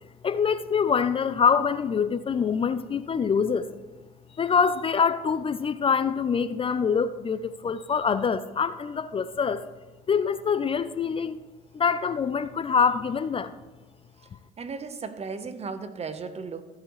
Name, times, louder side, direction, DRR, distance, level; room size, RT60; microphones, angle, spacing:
voice 1, 0.2-3.7 4.3-9.7 10.1-11.4 11.7-13.5, left 6 dB, 30° left, 13 dB, 0.5 m, -25 dB
voice 2, 14.6-16.6, right 5 dB, 35° right, 10 dB, 1.1 m, -35 dB
14.5 x 8.2 x 3.2 m, 1.2 s
hypercardioid pair, 65°, 18 cm